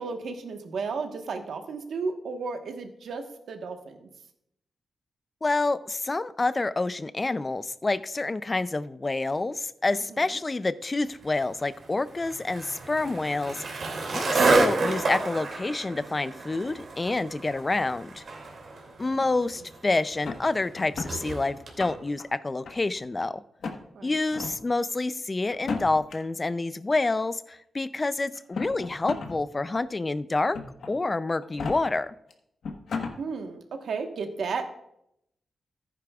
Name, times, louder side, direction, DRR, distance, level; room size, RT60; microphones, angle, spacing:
voice 1, 0.0-4.1 9.9-10.4 23.9-24.2 33.2-34.7, right 4 dB, 80° right, 5 dB, 1.2 m, -34 dB
voice 2, 5.4-13.6 14.1-18.2 19.0-23.4 24.0-30.6 30.9-32.1, left 3 dB, 25° left, 15 dB, 0.4 m, -28 dB
Skateboard, 11.2-21.8, right 3 dB, 65° right, 2.4 m, -30 dB
sound 1, 20.2-21.1 21.6-22.2 22.6-23.2 23.6-23.8 24.3-24.5 25.5-26.1 27.2-27.3 28.4-29.3 29.7-29.8 30.5-30.9 31.4-31.7 32.3-32.4 32.6-33.1, left 4 dB, 75° left, 1.2 m, -34 dB
14.5 x 9.7 x 2.4 m, 0.79 s
wide cardioid pair, 125°, 0 cm